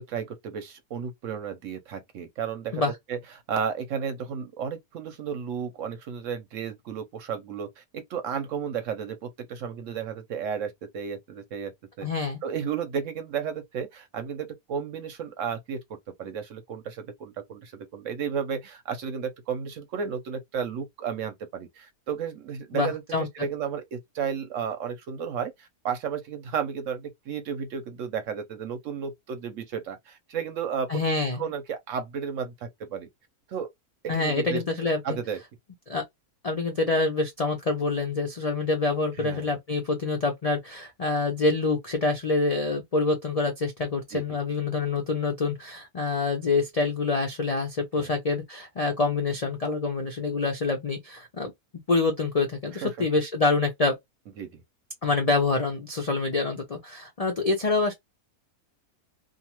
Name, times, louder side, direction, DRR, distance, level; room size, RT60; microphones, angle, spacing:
voice 1, 0.0-2.8 3.1-3.2 3.5-11.7 12.0-15.8 16.2-33.1 33.5-33.7 34.0-34.6 35.0-35.4 39.2-39.5 44.1-44.2 48.0-48.1 52.7-53.1 54.4-54.6, right 7 dB, 65° right, 0.9 m, -33 dB
voice 2, 12.0-12.4 22.7-23.3 30.9-31.5 34.1-35.2 35.9-36.0 36.4-51.5 51.9-53.9 55.0-57.9, left 3 dB, 75° left, 0.3 m, -26 dB
2.5 x 2.3 x 2.8 m
omnidirectional pair, 1.6 m